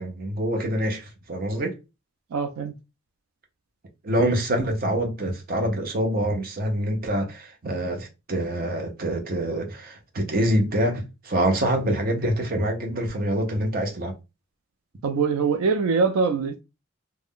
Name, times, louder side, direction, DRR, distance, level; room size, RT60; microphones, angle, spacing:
voice 1, 0.0-1.8 4.0-14.1, right 1 dB, 45° right, 0.6 m, -25 dB
voice 2, 2.3-2.7 15.0-16.6, right 5 dB, 90° right, 0.4 m, -23 dB
2.4 x 2.1 x 3.5 m
head